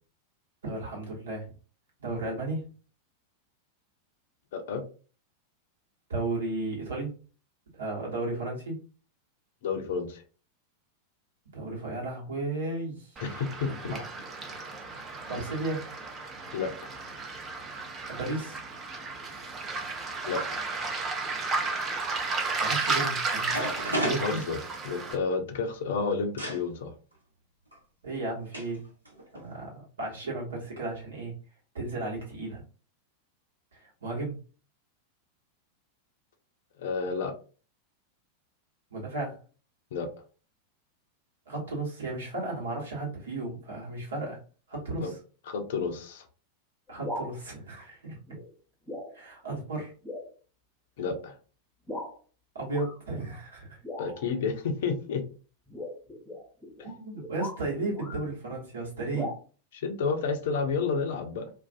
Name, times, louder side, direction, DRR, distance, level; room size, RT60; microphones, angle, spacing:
voice 1, 0.6-1.5 2.0-2.6 6.1-7.1 7.8-8.8 11.5-13.2 13.6-14.0 15.3-15.8 18.1-18.6 22.6-23.7 24.0-24.4 28.0-28.8 29.3-31.3 31.7-32.6 33.7-34.4 38.9-39.4 41.5-44.4 44.7-45.2 46.9-48.2 49.1-49.9 52.5-53.8 56.8-59.3, right 2 dB, 65° right, -2 dB, 1.1 m, -34 dB
voice 2, 4.5-4.8 9.6-10.2 13.2-14.0 16.5-16.9 20.2-20.6 24.2-24.6 24.8-26.9 36.8-37.3 39.9-40.1 45.0-45.1 45.5-46.3 51.0-51.4 54.0-55.3 59.7-61.5, left 5 dB, 55° left, 6 dB, 0.5 m, -30 dB
Waves surf, 13.2-25.2, right 4 dB, 25° right, 0.6 m, -33 dB
sound 1, 23.1-23.2 23.5-25.1 26.4-26.6 27.7-27.8 28.5-28.8 29.1-29.5, right 1 dB, 85° right, 0.7 m, -32 dB
sound 2, 46.9-47.3 48.3-48.5 48.9-49.2 49.5-49.6 50.0-50.3 51.0-51.1 51.9-52.2 52.7-53.0 53.8-54.4 55.7-58.3 59.1-59.3, left 1 dB, 10° left, 0.8 m, -39 dB
2.4 x 2.2 x 2.4 m, 0.37 s
figure-of-eight pair, 90°, 0 cm